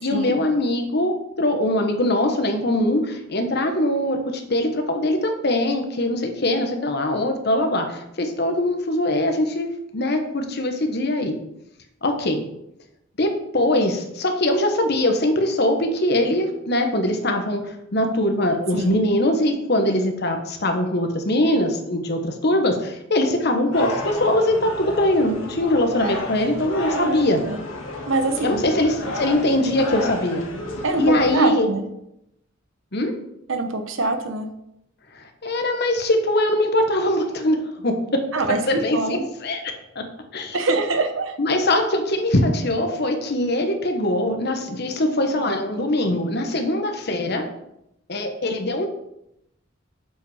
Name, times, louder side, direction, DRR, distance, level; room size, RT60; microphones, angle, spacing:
voice 1, 0.0-9.7 9.9-11.3 12.0-12.4 13.2-27.4 28.4-30.4 31.0-31.7 32.9-33.1 35.1-40.6 41.4-47.5 48.1-48.9, left 1 dB, 55° left, 5 dB, 1.2 m, -22 dB
sound 1, 23.7-31.4, left 2 dB, 85° left, 1.6 m, -32 dB
voice 2, 26.9-27.6 28.1-28.7 30.8-31.8 33.5-34.5 38.3-39.2 40.5-41.4, right 3 dB, 80° right, 7 dB, 1.0 m, -24 dB
7.7 x 5.2 x 4.9 m, 0.81 s
head